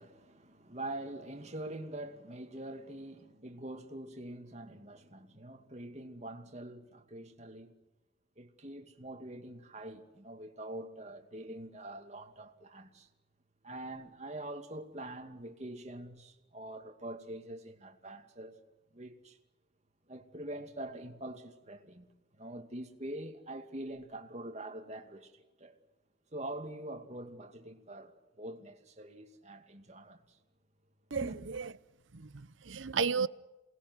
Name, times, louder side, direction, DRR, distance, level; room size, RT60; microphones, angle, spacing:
voice 1, 0.0-7.7 8.4-13.1 13.6-18.6 18.9-19.4 20.1-22.1 22.4-25.8 26.3-30.4 31.2-31.4, right 1 dB, 35° right, 2.4 m, -44 dB
voice 2, 31.1-31.7 32.1-33.3, right 5 dB, 75° right, 0.8 m, -33 dB
28.5 x 20.0 x 6.3 m
head